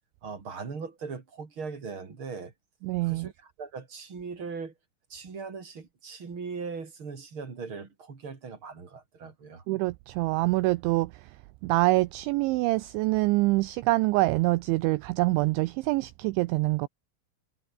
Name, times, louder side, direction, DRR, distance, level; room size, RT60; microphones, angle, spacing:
voice 1, 0.2-2.5 3.0-4.7 5.1-9.6, right 5 dB, 30° right, 3.2 m, -39 dB
voice 2, 2.8-3.3 9.7-11.3 11.6-16.9, right 20 dB, 85° right, 2.7 m, -25 dB
omnidirectional pair, 5.9 m